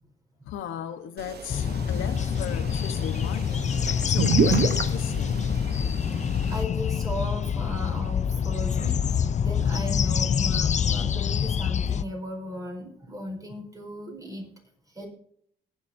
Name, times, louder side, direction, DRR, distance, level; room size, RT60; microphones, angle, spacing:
voice 1, 0.5-3.7 4.0-5.4, left 9 dB, 85° left, 1.1 m, -36 dB
sound 1, 1.2-6.6, right 6 dB, 55° right, 1.0 m, -30 dB
sound 2, 1.5-12.0, left 7 dB, 35° left, 0.5 m, -26 dB
voice 2, 6.5-14.4 14.9-15.1, equal, 15° right, 4.8 m, -36 dB
20.5 x 7.2 x 2.7 m
cardioid pair, 90°, 20 cm